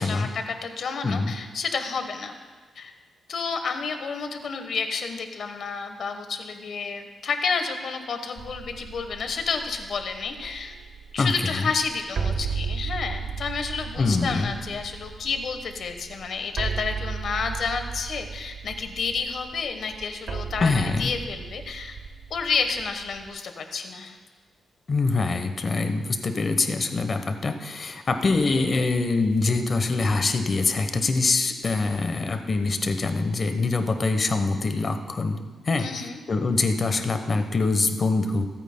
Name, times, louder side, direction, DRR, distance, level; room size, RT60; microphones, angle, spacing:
voice 1, 0.0-2.3 2.7-2.9 3.3-10.8 11.1-22.0 22.3-24.2 35.8-36.2, left 5 dB, 60° left, 6 dB, 1.1 m, -30 dB
sound 1, 8.4-23.3, right 5 dB, 60° right, 0.6 m, -35 dB
voice 2, 11.2-11.7 14.0-14.5 20.6-21.1 24.9-35.4 35.7-38.5, left 3 dB, 40° left, 7 dB, 0.9 m, -24 dB
27.0 x 9.0 x 2.2 m, 1.4 s
cardioid pair, 125°, 0 cm